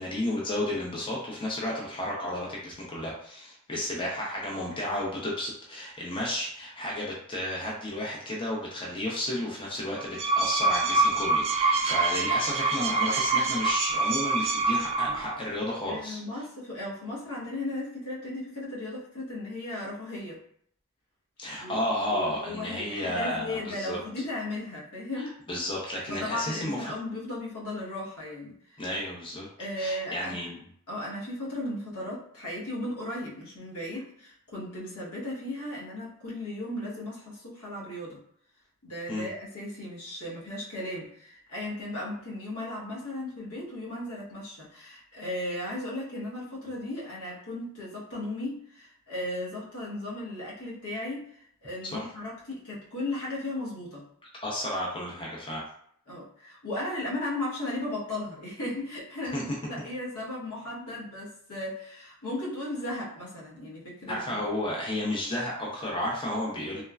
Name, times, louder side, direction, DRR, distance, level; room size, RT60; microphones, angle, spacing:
voice 1, 0.0-16.2 21.4-24.0 25.2-26.9 28.8-29.5 29.8-30.6 39.1-39.3 51.8-52.1 54.4-55.6 59.3-59.6 64.1-66.8, left 1 dB, 25° left, -3 dB, 0.5 m, -32 dB
sound 1, 10.0-15.3, right 3 dB, 30° right, 0.3 m, -25 dB
voice 2, 15.8-20.4 21.6-21.8 22.1-25.4 26.1-28.8 29.6-30.4 30.9-38.2 38.8-54.0 56.1-64.4, left 1 dB, 90° left, -5 dB, 1.1 m, -36 dB
3.1 x 2.1 x 2.3 m, 0.65 s
head